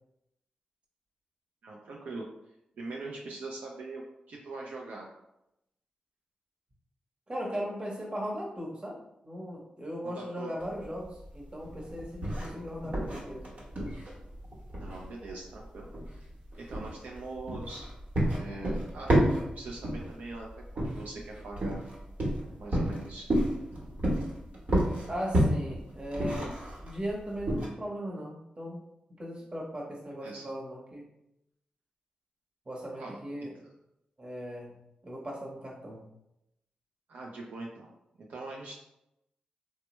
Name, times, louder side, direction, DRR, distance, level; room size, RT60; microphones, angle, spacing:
voice 1, 1.6-2.3 2.8-4.0 4.3-5.1 10.0-10.6 14.7-16.2 16.6-17.9 18.3-20.5 20.7-21.8 22.6-23.3 30.2-30.5 33.0-33.2 33.5-33.7 37.1-37.9 38.2-38.8, right 3 dB, 75° right, -2 dB, 0.4 m, -42 dB
voice 2, 7.3-9.0 9.2-13.5 25.1-26.5 26.8-28.8 29.2-31.1 32.7-33.6 34.2-36.1, equal, 35° right, -2 dB, 1.0 m, -38 dB
sound 1, 10.6-27.7, right 1 dB, 60° right, 1.0 m, -31 dB
3.2 x 2.1 x 3.0 m, 0.85 s
cardioid pair, 55°, 3 cm